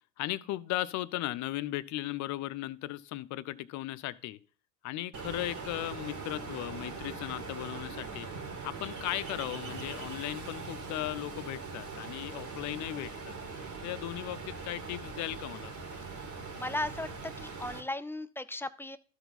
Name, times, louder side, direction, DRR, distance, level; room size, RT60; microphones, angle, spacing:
voice 1, 0.2-4.4 4.8-8.3 8.6-13.4 13.8-15.7, left 16 dB, 50° left, 0.6 m, -37 dB
Ocean, 5.1-17.8, right 4 dB, 50° right, 2.4 m, -41 dB
voice 2, 16.6-17.1 17.4-19.0, left 1 dB, 5° left, 0.4 m, -36 dB
13.0 x 4.6 x 4.0 m
hypercardioid pair, 70°, 38 cm